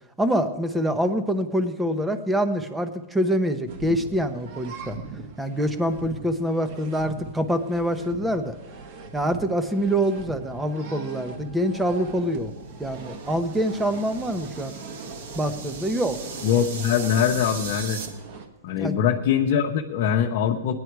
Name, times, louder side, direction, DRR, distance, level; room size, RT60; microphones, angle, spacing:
voice 1, 0.2-5.0 5.4-8.6 9.1-12.5 12.8-14.8 15.4-16.2 18.8-18.9, equal, 5° right, 9 dB, 0.9 m, -25 dB
sound 1, 3.7-18.5, right 3 dB, 45° right, 1.5 m, -40 dB
sound 2, 12.9-18.1, right 5 dB, 65° right, 2.1 m, -39 dB
voice 2, 16.4-18.0 18.6-20.7, left 8 dB, 50° left, 0 dB, 1.0 m, -22 dB
18.5 x 10.5 x 4.7 m, 1.1 s
hypercardioid pair, 150°, 0 cm